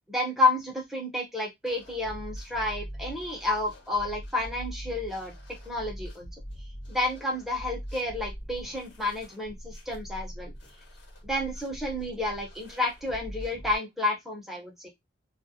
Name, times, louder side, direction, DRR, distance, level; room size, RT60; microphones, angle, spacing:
voice 1, 0.1-5.3 5.7-6.3 6.9-10.5 11.2-14.9, left 2 dB, ahead, -1 dB, 0.7 m, -30 dB
sound 1, 1.6-13.8, equal, 80° left, 1.1 m, -42 dB
2.4 x 2.0 x 2.7 m, 0.17 s
head